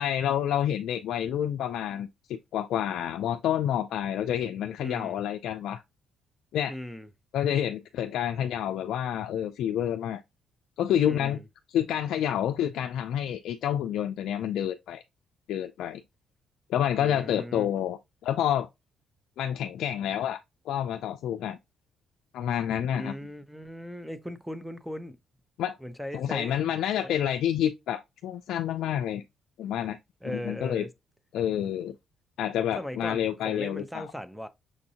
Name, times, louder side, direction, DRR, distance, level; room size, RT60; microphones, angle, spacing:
voice 1, 0.0-5.8 6.5-6.7 7.3-10.2 10.8-11.4 11.7-15.0 15.5-16.0 16.7-18.7 19.4-20.4 20.7-21.6 22.3-23.1 25.6-25.8 26.1-29.2 29.6-30.0 30.3-30.8 31.3-31.9 32.4-34.1, left 10 dB, 80° left, 0.3 m, -28 dB
voice 2, 4.8-5.2 6.7-7.1 11.1-11.5 16.9-17.7 22.9-25.2 25.8-26.6 27.0-27.2 30.2-30.9 32.8-34.5, equal, ahead, 0.6 m, -38 dB
6.2 x 2.6 x 2.8 m
cardioid pair, 90°, 0 cm